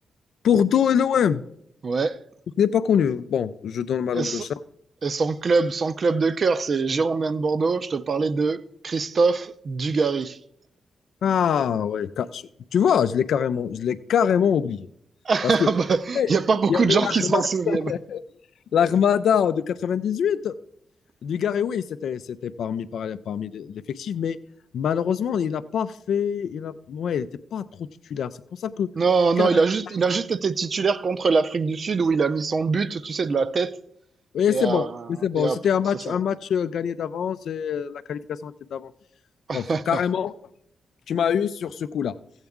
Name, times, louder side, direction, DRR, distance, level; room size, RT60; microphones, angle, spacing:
voice 1, 0.4-1.4 2.6-4.5 11.2-12.4 12.7-14.9 15.4-15.7 16.1-16.3 16.7-18.2 18.7-20.5 21.2-24.4 24.7-28.9 29.4-29.6 34.3-38.9 39.5-40.3 41.1-42.1, left 8 dB, 75° left, 0.4 m, -24 dB
voice 2, 1.8-2.1 4.1-4.5 5.0-10.4 15.3-17.9 29.0-33.7 34.5-35.0 35.3-35.6 39.5-40.0, right 4 dB, 50° right, 0.5 m, -23 dB
14.5 x 8.0 x 3.6 m
cardioid pair, 75°, 0 cm